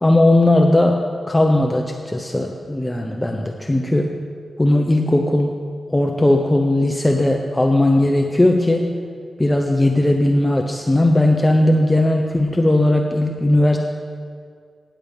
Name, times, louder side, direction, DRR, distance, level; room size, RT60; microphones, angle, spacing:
voice 1, 0.0-4.1 4.6-5.6 5.9-8.9 9.4-13.8, left 1 dB, 15° left, 2 dB, 0.7 m, -17 dB
9.6 x 7.4 x 5.3 m, 2.1 s
cardioid pair, 55°, 0 cm